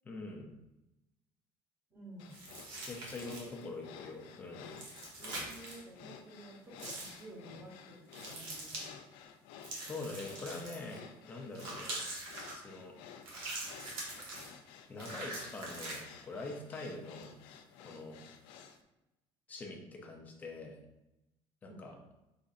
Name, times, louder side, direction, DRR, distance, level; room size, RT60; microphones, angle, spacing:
voice 1, 0.0-0.5 2.9-4.7 9.8-12.0 12.5-13.0 14.9-17.3 17.8-18.2 19.5-20.8 21.6-22.0, left 3 dB, 15° left, 1 dB, 0.6 m, -44 dB
voice 2, 1.9-2.3 3.5-3.8 5.2-8.9 21.7-21.8, right 1 dB, 25° right, -2 dB, 1.1 m, -52 dB
sound 1, 2.2-18.8, left 7 dB, 85° left, 0.5 m, -53 dB
sound 2, 2.3-3.6 4.7-5.8 6.8-7.2 8.1-8.9 9.6-11.0 11.5-12.6 13.2-14.5 15.0-16.0, right 2 dB, 60° right, 1.3 m, -43 dB
5.4 x 3.8 x 2.5 m, 0.94 s
cardioid pair, 180°, 9 cm